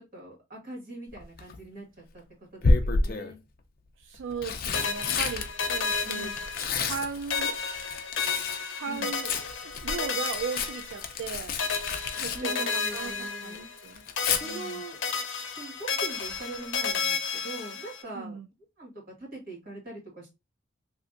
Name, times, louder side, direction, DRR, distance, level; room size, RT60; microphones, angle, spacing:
voice 1, 0.0-1.9 2.1-2.2 2.5-3.4 6.0-6.4 8.9-9.1 12.3-13.7 14.3-15.0 15.6-18.4 18.8-18.9 19.2-20.3, right 2 dB, 50° right, 2.0 m, -42 dB
Tearing, 1.1-1.6 2.6-3.4 4.1-8.6 8.9-13.2 13.5-14.4 16.3-16.6 16.9-17.0, left 3 dB, 50° left, 0.5 m, -30 dB
voice 2, 4.0-6.3 6.8-7.6 8.7-11.6 12.2-14.0 14.4-14.8 18.1-18.5, right 6 dB, 80° right, 0.3 m, -37 dB
sound 1, 4.7-7.0 7.3-11.3 11.6-13.9 14.2-18.0, left 5 dB, 85° left, 0.7 m, -32 dB
3.2 x 2.7 x 2.5 m
head